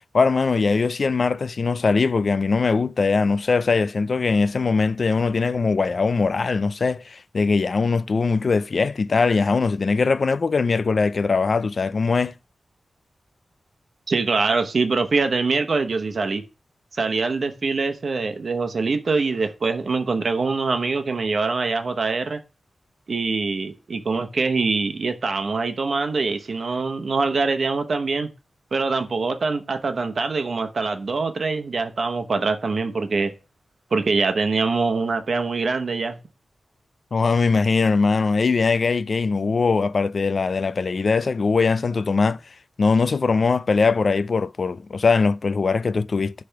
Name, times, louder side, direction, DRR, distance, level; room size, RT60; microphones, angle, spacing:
voice 1, 0.1-12.3 37.1-42.4 42.8-46.3, left 4 dB, 55° left, 0.4 m, -21 dB
voice 2, 14.1-16.4 16.9-22.4 23.1-28.3 28.7-33.3 33.9-36.2, right 4 dB, 60° right, 0.9 m, -24 dB
10.0 x 3.4 x 5.8 m
wide cardioid pair, 110°, 0 cm